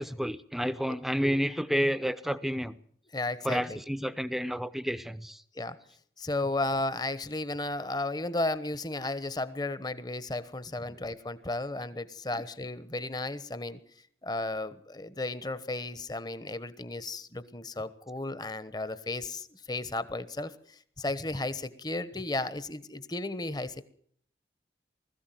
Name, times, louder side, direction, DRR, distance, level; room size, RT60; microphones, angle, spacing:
voice 1, 0.0-2.7 3.4-5.4 10.9-11.0, equal, ahead, 0.8 m, -30 dB
voice 2, 3.1-3.8 5.5-5.8 6.2-13.8 14.2-23.8, left 2 dB, 25° left, 1.1 m, -34 dB
20.5 x 14.5 x 9.2 m
head